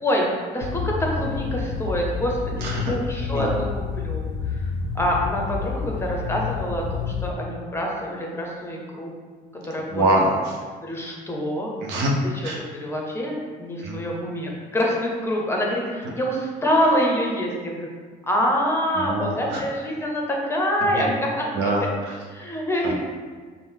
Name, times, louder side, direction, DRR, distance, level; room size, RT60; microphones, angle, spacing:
voice 1, 0.0-9.1 9.6-10.0 10.8-11.7 12.2-17.9 18.2-21.7 22.3-23.0, equal, 15° left, -1 dB, 0.7 m, -26 dB
sound 1, 0.6-7.3, left 6 dB, 80° left, 0.4 m, -29 dB
voice 2, 2.6-2.9 3.3-3.6 9.9-10.6 11.8-12.1 12.4-12.6 13.8-14.0 18.9-19.6 20.9-21.1 21.5-22.2 22.8-23.0, right 1 dB, 85° right, 0 dB, 0.8 m, -24 dB
5.3 x 2.1 x 3.6 m, 1.5 s
cardioid pair, 110°, 17 cm